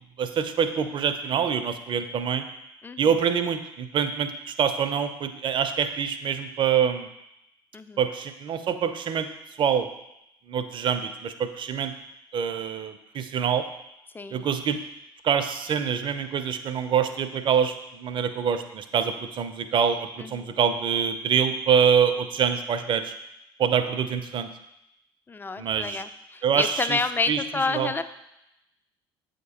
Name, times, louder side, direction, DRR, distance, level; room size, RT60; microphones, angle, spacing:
voice 1, 0.2-2.4 3.0-7.1 8.0-9.3 9.6-9.9 10.5-11.9 12.3-13.6 14.3-14.8 15.2-23.1 23.6-24.5 25.6-26.0 26.4-27.0 27.3-27.4 27.7-27.9, right 7 dB, 40° right, 10 dB, 0.5 m, -25 dB
voice 2, 7.7-8.1 14.1-14.5 20.2-20.5 25.3-28.0, left 4 dB, 15° left, 12 dB, 0.3 m, -29 dB
7.7 x 2.9 x 4.2 m, 0.86 s
figure-of-eight pair, 60°, 13 cm